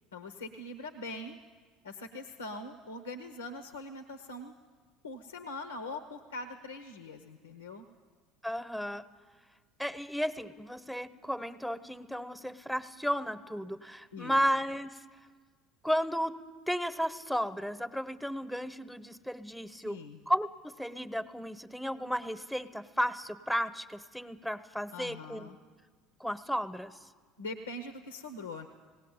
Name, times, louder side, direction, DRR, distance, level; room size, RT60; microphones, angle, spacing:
voice 1, 0.1-1.4 1.8-4.5 5.0-7.9 14.1-14.4 19.8-20.2 24.9-25.6 27.4-28.7, left 2 dB, 90° left, 8 dB, 0.9 m, -42 dB
voice 2, 8.4-9.0 9.8-15.0 15.8-16.4 16.7-25.5 26.2-27.1, equal, 5° left, 12 dB, 1.0 m, -34 dB
18.0 x 18.0 x 9.0 m, 1.5 s
hypercardioid pair, 70°, 0 cm